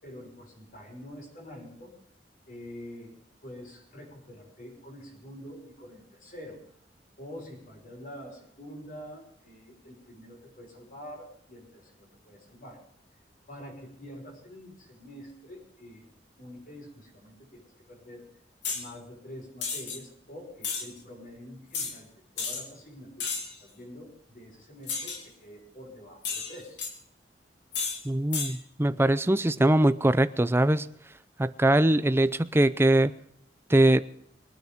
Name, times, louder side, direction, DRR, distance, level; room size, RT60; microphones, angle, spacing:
voice 1, 0.0-1.9 2.5-3.1 3.4-6.6 7.2-12.8 13.5-16.1 16.4-18.3 18.7-22.1 22.4-26.8, equal, 50° left, 0 dB, 5.7 m, -46 dB
sound 1, 18.6-18.9 19.6-20.0 20.6-20.9 21.7-21.9 22.4-22.6 23.2-23.6 24.9-25.2 26.2-26.9 27.7-28.0 28.3-28.5, left 5 dB, 80° left, 2.9 m, -32 dB
voice 2, 28.0-30.9 31.4-33.1 33.7-34.0, right 1 dB, 15° right, 14 dB, 0.5 m, -22 dB
22.5 x 9.5 x 5.3 m, 0.73 s
head